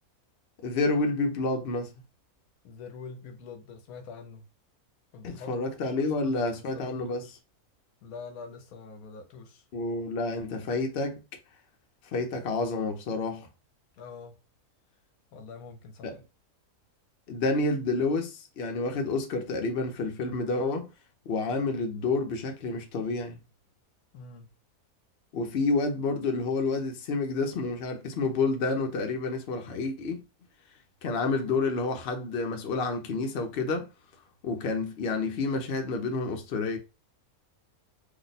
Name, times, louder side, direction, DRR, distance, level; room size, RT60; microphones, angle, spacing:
voice 1, 0.6-1.9 5.2-7.4 9.7-11.2 12.1-13.5 16.0-16.2 17.3-20.9 21.3-23.4 25.3-30.2 31.0-33.9 34.4-36.8, left 3 dB, 55° left, 0.7 m, -29 dB
voice 2, 2.6-4.4 5.1-5.7 6.0-7.3 8.0-9.6 13.9-14.4 15.3-16.1 24.1-24.5, left 4 dB, 75° left, 1.1 m, -45 dB
2.8 x 2.1 x 4.0 m
omnidirectional pair, 1.6 m